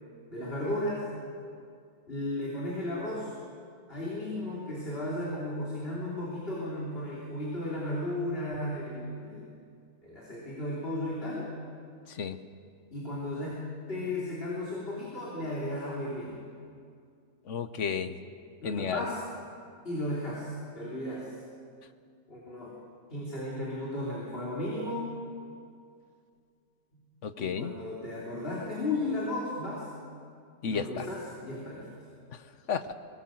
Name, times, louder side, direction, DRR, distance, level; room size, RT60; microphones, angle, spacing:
voice 1, 0.3-1.1 2.1-3.3 3.9-9.6 10.0-11.5 12.9-16.5 18.6-19.2 19.8-21.3 22.3-22.7 23.1-25.1 26.9-27.1 27.4-29.9 30.7-31.9, left 1 dB, 35° left, -5 dB, 3.5 m, -34 dB
voice 2, 17.5-18.2 18.6-19.1 27.2-27.7 30.6-31.1 32.3-32.4 32.7-32.9, left 6 dB, 55° left, 10 dB, 1.1 m, -32 dB
22.5 x 19.0 x 7.7 m, 2.3 s
omnidirectional pair, 1.7 m